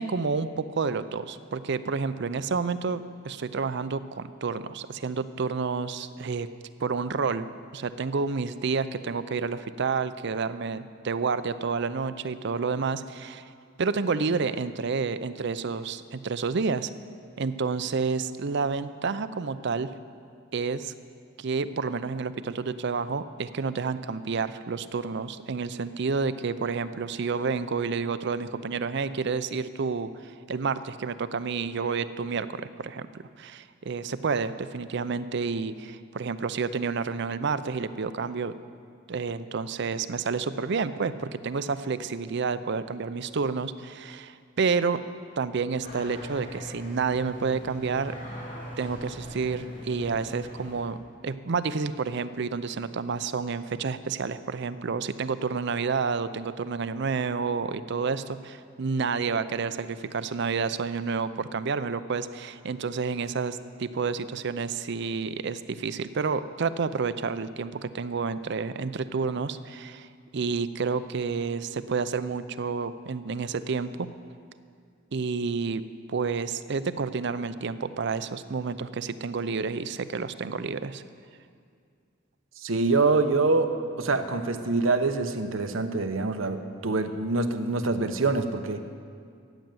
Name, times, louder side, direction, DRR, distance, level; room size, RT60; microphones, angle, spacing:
voice 1, 0.0-6.5 6.8-13.4 13.8-16.9 17.4-19.9 20.5-20.9 21.4-33.1 33.4-38.5 39.1-45.0 45.4-48.1 48.8-51.0 51.2-70.1 70.3-74.1 75.1-75.8 76.1-81.0, right 5 dB, 60° right, 13 dB, 0.5 m, -29 dB
sound 1, 45.8-50.8, equal, 65° left, 4.5 m, -40 dB
voice 2, 82.6-88.8, right 3 dB, 90° right, 7 dB, 0.9 m, -25 dB
14.0 x 9.2 x 7.7 m, 2.2 s
head